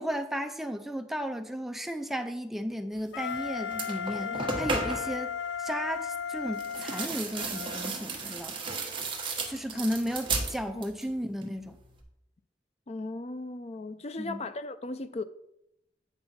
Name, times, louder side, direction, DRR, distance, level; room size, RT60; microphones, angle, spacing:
voice 1, 0.0-8.6 9.5-11.8 14.2-14.4, equal, ahead, 0.6 m, -34 dB
Wind instrument woodwind instrument, 3.1-7.9, left 7 dB, 85° left, 0.4 m, -35 dB
sound 1, 3.3-3.4 3.7-5.2 6.5-11.1 11.4-12.0, right 3 dB, 30° right, 1.4 m, -34 dB
voice 2, 12.9-15.2, left 2 dB, 40° left, 0.5 m, -37 dB
8.9 x 5.5 x 4.3 m
head